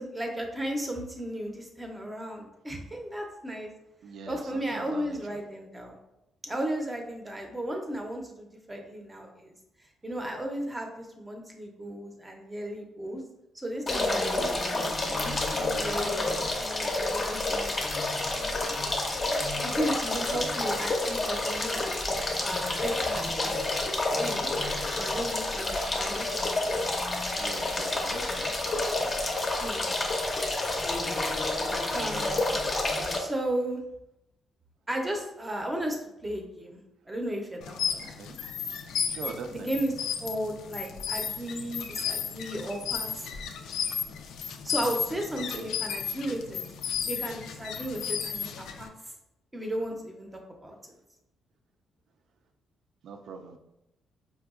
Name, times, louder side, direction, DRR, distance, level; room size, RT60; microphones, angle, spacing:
voice 1, 0.0-3.7 4.3-6.0 6.4-9.5 10.0-13.2 13.5-17.8 19.6-24.5 24.9-26.3 29.6-29.9 31.9-32.6 33.2-33.8 34.9-36.0 36.2-36.8 37.1-38.1 39.5-39.9 40.2-43.3 44.6-46.6 47.1-48.9 49.5-50.8, right 1 dB, 15° right, 2 dB, 0.6 m, -35 dB
voice 2, 4.0-5.4 19.7-20.0 20.3-20.7 27.4-29.2 38.2-38.4 39.1-39.7 45.5-45.7 53.0-53.6, right 5 dB, 65° right, 6 dB, 0.4 m, -42 dB
sound 1, 13.9-33.2, left 2 dB, 30° left, 0.6 m, -29 dB
sound 2, 37.6-48.9, left 7 dB, 85° left, 0.3 m, -34 dB
4.6 x 2.2 x 2.4 m, 0.87 s
cardioid pair, 110°, 0 cm